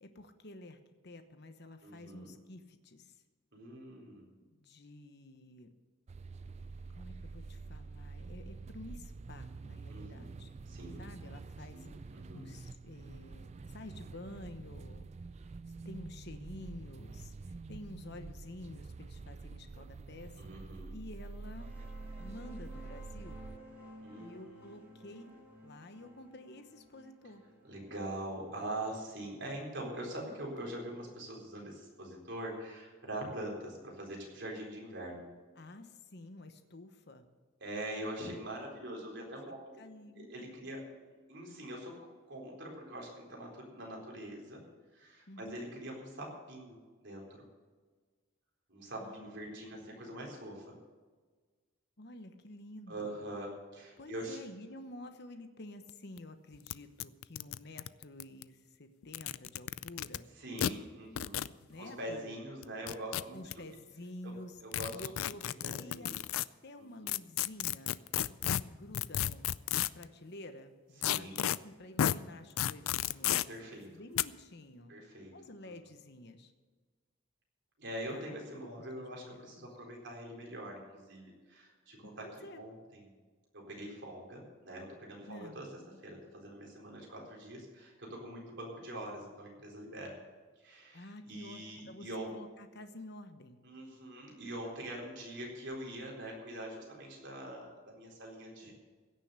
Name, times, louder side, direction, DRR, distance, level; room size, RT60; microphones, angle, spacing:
voice 1, 0.0-3.2 4.5-5.7 6.9-10.5 11.0-15.1 15.4-15.5 15.8-20.4 20.9-21.7 22.2-23.5 24.2-25.3 25.6-27.4 35.6-37.3 39.8-40.7 45.3-45.6 49.0-50.2 52.0-53.2 54.0-60.3 61.7-62.4 63.3-64.6 64.9-65.5 65.8-66.1 66.6-67.9 68.5-69.4 69.7-73.5 73.9-74.9 75.3-76.5 78.1-79.7 82.0-82.6 85.3-85.6 90.9-93.6, left 1 dB, 55° left, 8 dB, 1.0 m, -50 dB
voice 2, 1.8-2.3 3.5-4.3 9.9-10.3 10.7-11.0 11.7-12.5 20.4-20.9 24.0-24.9 27.7-35.3 37.6-39.8 40.1-40.8 41.3-41.9 42.3-44.6 44.9-47.4 48.7-50.7 52.9-54.4 60.4-61.5 61.7-63.4 64.2-64.3 64.6-65.0 65.6-66.1 66.8-67.1 71.0-71.4 73.2-73.9 74.9-75.3 77.8-82.3 82.6-83.1 83.5-85.7 86.0-90.2 90.6-92.3 93.6-98.7, right 1 dB, 55° right, -2 dB, 4.2 m, -43 dB
sound 1, 6.1-23.6, right 3 dB, 30° right, 0.3 m, -47 dB
sound 2, 21.3-30.5, equal, 10° right, 3.3 m, -55 dB
sound 3, 55.9-56.0 56.2-56.3 56.7-56.8 57.0-58.4 59.0-60.2 60.6-60.7 61.2-61.5 62.6-63.5 64.7-66.5 67.1-70.0 71.0-71.6 72.0-72.2 72.6-73.4 74.2-74.3, left 11 dB, 85° left, 0.4 m, -32 dB
16.0 x 6.9 x 8.2 m, 1.4 s
head